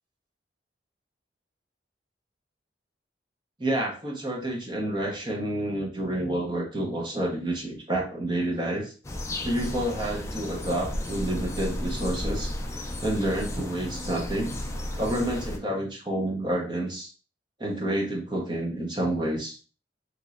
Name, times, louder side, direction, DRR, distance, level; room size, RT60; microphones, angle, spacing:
voice 1, 3.6-8.9 9.4-12.5 13.0-14.6 15.0-17.1 17.6-19.6, right 1 dB, 25° right, 0 dB, 0.6 m, -29 dB
sound 1, 9.0-15.6, left 1 dB, 15° left, 0.3 m, -33 dB
3.0 x 2.9 x 2.4 m, 0.37 s
head